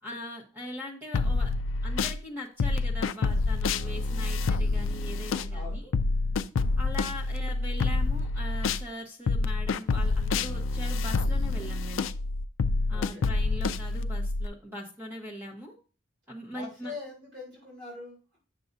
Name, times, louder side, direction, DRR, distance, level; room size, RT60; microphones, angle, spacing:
voice 1, 0.0-1.5 1.8-5.9 6.8-12.0 12.9-15.7 16.3-16.9, left 1 dB, 10° right, -1 dB, 1.2 m, -41 dB
sound 1, 1.1-2.2 2.6-8.8 9.3-14.5, left 3 dB, 75° left, 0.4 m, -27 dB
voice 2, 5.5-5.9 12.9-13.3 16.5-18.4, left 3 dB, 60° right, -4 dB, 3.6 m, -43 dB
8.2 x 6.7 x 2.7 m, 0.35 s
head